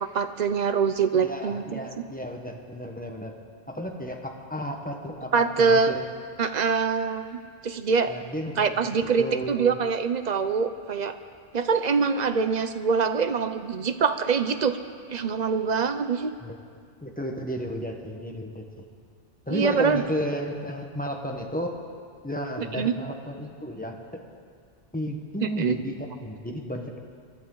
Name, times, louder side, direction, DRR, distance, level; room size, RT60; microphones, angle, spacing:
voice 1, 0.0-1.8 5.3-5.9 6.4-7.2 7.6-8.1 8.6-11.1 11.5-14.8 15.1-16.3 19.5-20.0 22.6-22.9 25.4-25.8, right 5 dB, 50° right, 9 dB, 0.6 m, -24 dB
voice 2, 1.1-3.3 3.7-6.1 8.1-9.8 16.4-16.6 17.0-18.8 19.5-21.8 22.2-24.3 24.9-27.0, equal, 10° left, 1 dB, 1.2 m, -33 dB
24.0 x 12.0 x 3.9 m, 2.1 s
omnidirectional pair, 1.1 m